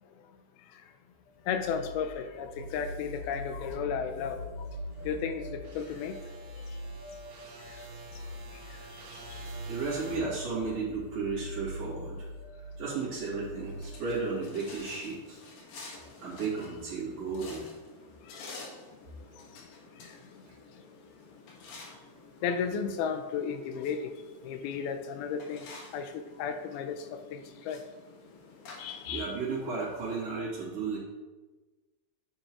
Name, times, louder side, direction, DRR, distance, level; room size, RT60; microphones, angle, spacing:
sound 1, 1.3-14.7, equal, 50° left, 1.8 m, -44 dB
voice 1, 1.5-4.4 5.0-6.2 7.7-7.8 8.7-8.8 9.1-9.4 18.3-18.5 19.6-19.7 20.0-20.2 22.4-24.1 24.4-25.6 25.9-27.8 28.8-29.3, left 6 dB, 90° left, 7 dB, 2.7 m, -34 dB
sound 2, 2.6-10.2, equal, 65° right, 3.5 m, -46 dB
voice 2, 9.7-12.2 12.6-15.4 16.2-17.7 29.1-31.0, right 4 dB, 45° right, -6 dB, 3.0 m, -34 dB
sound 3, 13.6-30.3, left 3 dB, 65° left, 2.8 m, -50 dB
10.5 x 7.0 x 3.0 m, 1.2 s
omnidirectional pair, 4.3 m